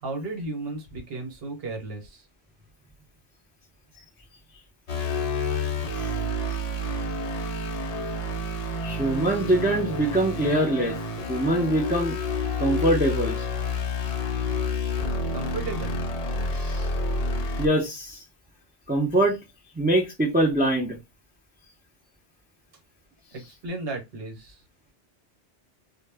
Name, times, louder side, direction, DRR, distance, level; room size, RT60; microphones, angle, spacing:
voice 1, 0.0-2.2 15.3-16.0 23.3-24.6, right 3 dB, 60° right, 1.1 m, -34 dB
sound 1, 4.9-17.7, left 2 dB, 55° left, 0.4 m, -29 dB
voice 2, 8.8-11.0 11.3-12.2 12.6-13.5 16.5-16.9 17.6-18.2 18.9-19.4 19.8-21.0, right 1 dB, 15° right, 0.4 m, -23 dB
2.1 x 2.1 x 3.3 m
omnidirectional pair, 1.1 m